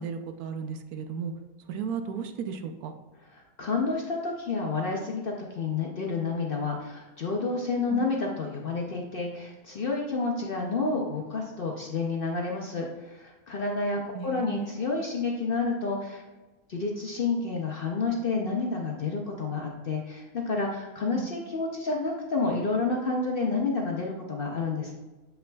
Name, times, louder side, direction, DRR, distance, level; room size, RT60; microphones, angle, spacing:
voice 1, 0.0-1.3 1.7-2.9 7.9-8.1 14.1-14.8 21.1-21.3, right 6 dB, 80° right, 7 dB, 1.1 m, -35 dB
voice 2, 3.3-16.2 16.7-25.0, left 3 dB, 50° left, 0 dB, 0.7 m, -30 dB
7.8 x 5.6 x 2.3 m, 1.2 s
omnidirectional pair, 1.6 m